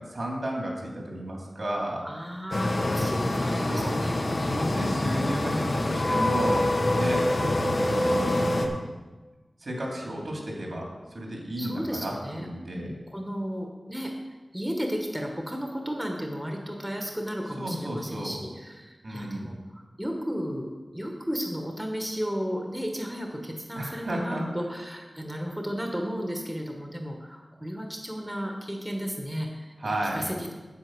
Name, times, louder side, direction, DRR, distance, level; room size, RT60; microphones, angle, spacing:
voice 1, 0.0-2.1 3.7-4.0 4.5-6.7 6.9-7.2 8.1-8.6 9.6-12.9 17.6-18.4 19.0-19.5 23.8-24.4 29.8-30.3, right 1 dB, 65° right, -1 dB, 2.7 m, -33 dB
voice 2, 2.0-5.3 6.9-7.2 11.6-12.5 12.7-14.1 14.5-30.5, equal, 10° right, 2 dB, 1.4 m, -34 dB
sound 1, 2.5-8.7, left 1 dB, 50° left, 1.2 m, -25 dB
8.4 x 8.4 x 6.2 m, 1.2 s
wide cardioid pair, 85°, 0 cm